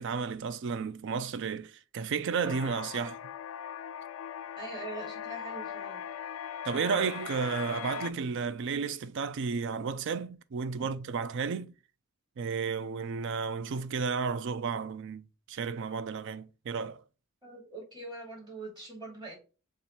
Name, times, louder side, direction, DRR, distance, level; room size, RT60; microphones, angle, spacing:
voice 1, 0.0-3.2 6.6-11.7 12.4-15.2 15.5-17.0, right 5 dB, 55° right, 0.4 m, -32 dB
sound 1, 2.4-8.1, left 9 dB, 70° left, 0.3 m, -40 dB
voice 2, 4.6-6.1 17.4-19.4, right 2 dB, 20° right, 2.3 m, -43 dB
7.0 x 2.5 x 3.0 m
head